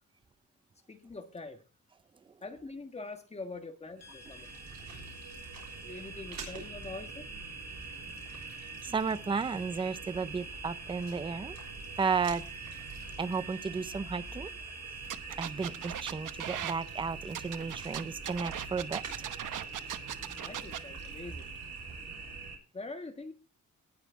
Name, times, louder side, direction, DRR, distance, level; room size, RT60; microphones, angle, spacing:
voice 1, 0.9-1.6 2.4-4.5 5.8-7.2 20.4-21.5 22.7-23.3, left 3 dB, 20° left, 1.7 m, -44 dB
sound 1, 4.0-15.4, left 4 dB, 55° left, 2.2 m, -55 dB
sound 2, 4.0-22.6, right 4 dB, 60° right, 6.3 m, -43 dB
voice 2, 8.8-11.6 12.0-12.4 13.2-14.5 15.4-19.3, right 5 dB, 15° right, 0.5 m, -33 dB
sound 3, 15.0-16.7 17.3-20.8, right 10 dB, 90° right, 1.0 m, -39 dB
19.0 x 6.4 x 4.6 m
wide cardioid pair, 180°, 31 cm